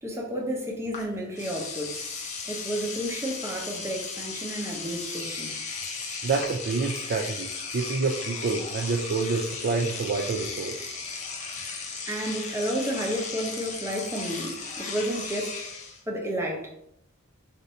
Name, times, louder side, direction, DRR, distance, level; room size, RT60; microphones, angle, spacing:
voice 1, 0.0-2.2 2.4-5.6 12.1-15.6 16.1-16.7, right 1 dB, 15° right, -1 dB, 0.6 m, -31 dB
Engine / Domestic sounds home sounds, 0.9-1.0 1.3-16.0, left 4 dB, 35° left, 0.6 m, -36 dB
voice 2, 6.2-10.9, right 4 dB, 50° right, 1 dB, 0.3 m, -28 dB
2.7 x 2.5 x 4.2 m, 0.73 s
head